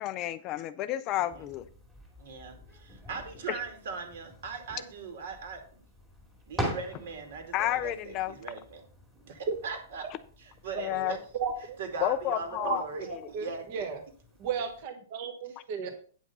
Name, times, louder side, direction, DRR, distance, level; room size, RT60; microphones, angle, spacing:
voice 1, 0.0-1.7 3.5-3.6 6.6-6.7 7.5-8.3 10.8-11.2 12.0-12.8 13.1-13.2, left 13 dB, 25° left, 13 dB, 0.4 m, -31 dB
voice 2, 1.1-1.5 2.2-5.8 6.5-8.8 9.2-10.1 10.4-11.2 11.8-13.9 15.8-15.9, right 5 dB, 55° right, 6 dB, 2.4 m, -40 dB
sound 1, 1.3-14.8, right 1 dB, 10° right, 2.2 m, -44 dB
voice 3, 11.4-11.8 12.6-14.0 14.4-15.9, right 6 dB, 35° right, 6 dB, 1.2 m, -34 dB
9.0 x 5.9 x 5.4 m, 0.44 s
hypercardioid pair, 170°, 0 cm